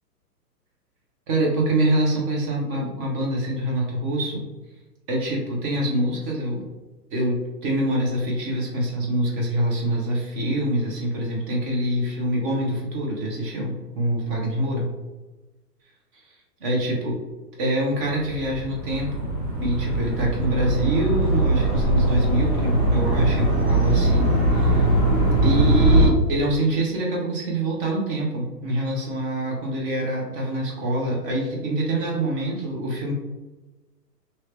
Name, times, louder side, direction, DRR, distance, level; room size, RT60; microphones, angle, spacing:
voice 1, 1.3-4.4 5.1-6.6 7.1-14.9 16.2-16.3 16.6-17.2 17.6-19.3 19.6-24.9 25.4-33.1, right 1 dB, 35° right, -2 dB, 1.0 m, -25 dB
sound 1, 18.1-26.1, right 1 dB, 15° right, 0.5 m, -21 dB
2.8 x 2.8 x 3.4 m, 1.2 s
hypercardioid pair, 130°, 49 cm